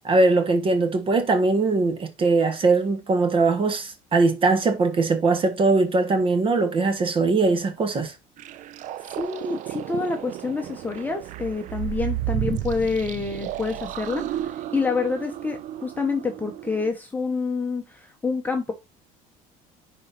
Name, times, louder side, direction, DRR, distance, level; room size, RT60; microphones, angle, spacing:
voice 1, 0.0-8.1, right 3 dB, 35° right, 1.4 m, -21 dB
sound 1, 8.4-16.9, right 13 dB, 55° right, 0.5 m, -33 dB
voice 2, 9.2-18.7, left 4 dB, 10° left, 1.0 m, -27 dB
11.0 x 4.3 x 2.6 m
cardioid pair, 120°, 16 cm